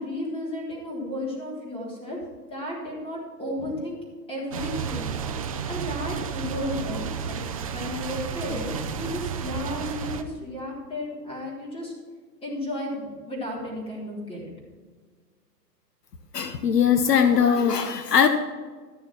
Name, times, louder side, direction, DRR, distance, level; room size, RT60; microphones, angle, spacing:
voice 1, 0.0-2.2 2.5-4.0 4.3-5.0 5.7-8.7 9.0-11.9 12.4-14.5, left 1 dB, 10° left, -3 dB, 3.8 m, -33 dB
sound 1, 4.5-10.2, right 7 dB, 25° right, 0.4 m, -32 dB
voice 2, 16.3-18.3, left 7 dB, 70° left, 8 dB, 1.1 m, -20 dB
13.5 x 7.0 x 6.1 m, 1.5 s
hypercardioid pair, 130°, 50 cm